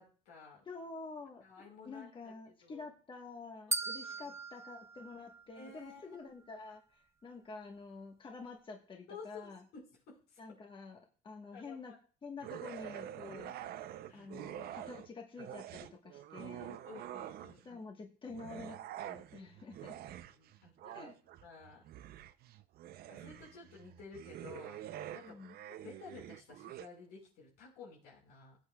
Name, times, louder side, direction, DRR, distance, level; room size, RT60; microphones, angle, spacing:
voice 1, 0.0-0.6 1.4-2.8 4.1-4.3 5.5-6.1 9.1-10.4 11.5-12.0 14.1-14.3 14.5-14.9 16.6-17.8 19.3-19.7 20.2-21.1 21.4-21.8 23.1-24.8 25.1-25.4 25.7-28.6, left 5 dB, 90° left, -2 dB, 5.0 m, -53 dB
voice 2, 0.6-9.6 10.4-12.0 12.2-13.5 14.1-16.7 17.6-18.8 19.0-20.0 20.8-21.1 23.3-23.6 25.2-25.6, left 4 dB, 30° left, 2 dB, 1.3 m, -48 dB
sound 1, 3.7-6.0, right 4 dB, 15° right, 0.4 m, -40 dB
sound 2, 12.4-15.1 15.4-17.8 18.3-26.9, right 12 dB, 65° right, 0.5 m, -47 dB
17.5 x 8.1 x 2.3 m, 0.41 s
cardioid pair, 110°, 17 cm